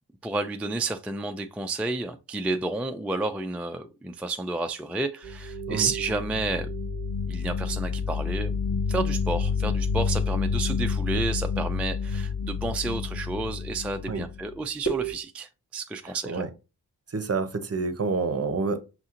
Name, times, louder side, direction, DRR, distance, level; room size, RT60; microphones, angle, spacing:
voice 1, 0.2-6.7 7.3-16.4, right 3 dB, 5° right, 0.3 m, -31 dB
sound 1, 5.2-14.5 14.9-15.1, left 4 dB, 35° left, 1.2 m, -29 dB
voice 2, 16.0-16.5 17.1-18.8, right 4 dB, 40° right, 0.7 m, -28 dB
5.7 x 2.8 x 2.5 m
cardioid pair, 60°, 39 cm